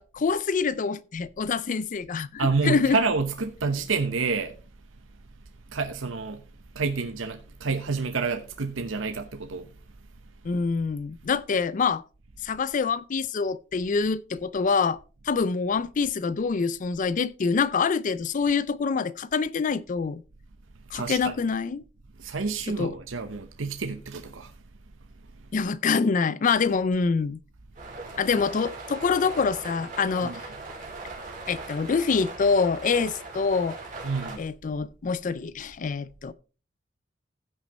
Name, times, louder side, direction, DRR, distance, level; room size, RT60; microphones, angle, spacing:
voice 1, 0.0-3.0 10.4-12.0 12.4-15.0 15.2-20.2 20.9-21.8 22.8-22.9 25.5-27.4 28.2-30.3 31.5-33.8 34.4-36.3, left 5 dB, 40° left, 0.4 m, -25 dB
voice 2, 2.4-4.6 5.7-6.4 6.7-9.7 20.9-21.3 22.2-24.5 30.2-30.3 34.0-34.5, right 4 dB, 90° right, 0.9 m, -28 dB
sound 1, 27.8-34.4, right 3 dB, 40° right, 3.8 m, -39 dB
15.0 x 6.3 x 4.1 m
head